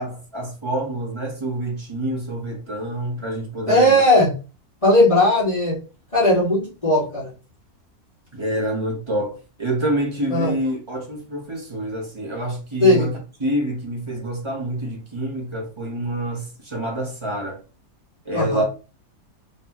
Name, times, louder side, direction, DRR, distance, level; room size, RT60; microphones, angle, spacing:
voice 1, 0.0-4.0 8.3-17.6 18.2-18.6, right 1 dB, 20° right, 1.4 m, -27 dB
voice 2, 3.7-4.3 4.8-5.7 6.1-7.3 10.3-10.5 12.8-13.1 18.3-18.6, left 1 dB, 20° left, 2.2 m, -17 dB
3.9 x 3.5 x 3.0 m
omnidirectional pair, 1.6 m